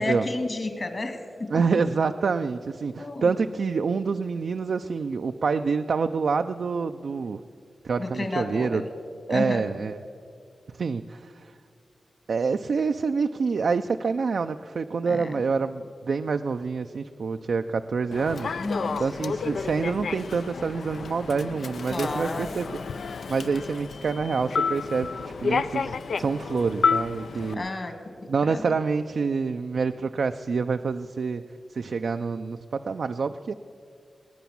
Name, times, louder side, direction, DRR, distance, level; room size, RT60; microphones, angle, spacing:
voice 1, 0.0-1.5 3.0-3.3 8.0-8.9 9.3-9.6 15.1-15.3 18.6-19.1 21.9-22.5 27.5-28.8, left 2 dB, 50° left, 7 dB, 2.0 m, -31 dB
voice 2, 1.5-7.4 7.8-8.8 9.3-10.0 10.8-11.5 12.3-18.5 19.0-22.8 23.3-25.1 25.4-27.6 28.3-31.4 31.7-33.5, right 5 dB, 80° right, 7 dB, 0.4 m, -27 dB
Human voice / Subway metro underground, 18.1-27.5, left 5 dB, 85° left, 0.4 m, -30 dB
20.5 x 9.2 x 7.1 m, 2.3 s
wide cardioid pair, 75°, 0 cm